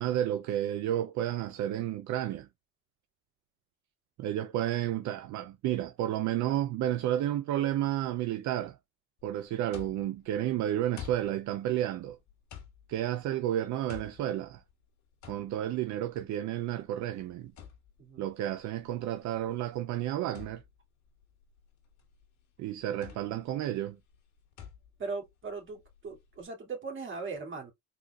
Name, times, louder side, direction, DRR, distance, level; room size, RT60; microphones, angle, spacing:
voice 1, 0.0-2.5 4.2-8.8 9.2-12.2 12.9-14.6 15.3-17.5 18.2-20.6 22.6-24.0, right 12 dB, 60° right, 0.7 m, -31 dB
sound 1, 9.2-26.4, left 9 dB, 55° left, 2.0 m, -52 dB
voice 2, 18.0-18.3 25.0-27.7, right 4 dB, 35° right, 2.7 m, -39 dB
4.4 x 4.1 x 2.4 m
cardioid pair, 115°, 33 cm